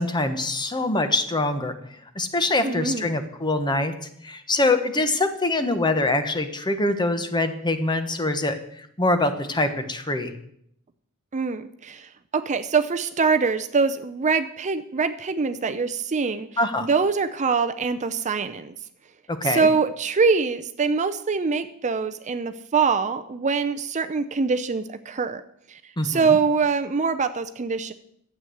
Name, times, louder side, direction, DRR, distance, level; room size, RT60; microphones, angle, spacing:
voice 1, 0.0-1.7 2.1-3.9 4.2-8.6 9.0-10.3 16.6-16.9 19.3-19.7 26.0-26.2, left 2 dB, 20° left, 8 dB, 1.1 m, -24 dB
voice 2, 2.6-3.1 11.3-16.5 16.8-18.7 19.4-25.4 25.7-27.9, right 5 dB, 35° right, 10 dB, 0.5 m, -24 dB
12.0 x 8.1 x 7.7 m, 0.71 s
head